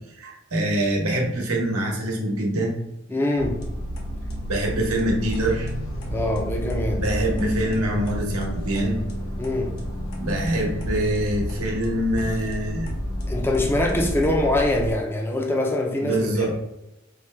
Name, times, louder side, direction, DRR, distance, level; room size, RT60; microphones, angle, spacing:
voice 1, 0.2-2.8 4.5-5.7 7.0-9.0 10.2-12.9 16.0-16.5, right 1 dB, 90° right, 1.0 m, -25 dB
voice 2, 3.1-3.6 6.1-7.0 9.4-9.7 13.3-16.3, left 1 dB, 10° left, 0.4 m, -23 dB
sound 1, 3.4-14.9, equal, 85° left, 0.8 m, -30 dB
4.4 x 2.2 x 3.2 m
head